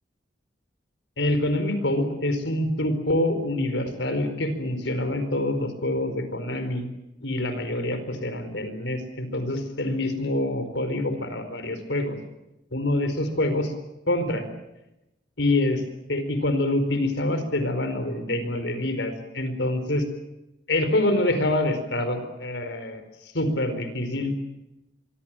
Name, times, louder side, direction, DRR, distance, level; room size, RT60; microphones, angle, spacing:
voice 1, 1.2-6.9 7.2-12.2 12.7-13.7 14.1-14.4 15.4-15.8 16.1-20.1 20.7-23.0 23.3-24.3, left 1 dB, 80° left, 10 dB, 4.6 m, -26 dB
26.0 x 23.5 x 7.6 m, 0.91 s
head